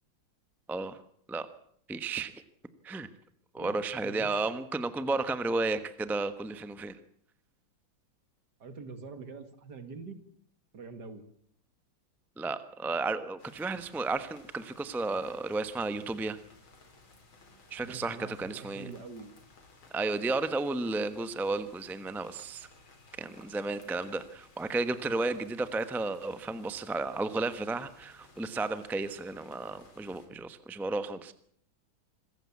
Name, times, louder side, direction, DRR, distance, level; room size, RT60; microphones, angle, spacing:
voice 1, 1.9-2.4 2.8-3.1 3.5-7.0 12.4-16.4 17.7-18.9 19.9-22.7 23.2-31.3, right 3 dB, ahead, 11 dB, 0.6 m, -33 dB
voice 2, 3.6-4.3 8.6-10.2 10.7-11.2 17.8-19.3 30.3-30.4, right 4 dB, 55° right, 10 dB, 2.5 m, -45 dB
sound 1, 13.4-30.3, left 3 dB, 80° left, 4.1 m, -58 dB
26.0 x 15.0 x 8.5 m, 0.65 s
omnidirectional pair, 2.2 m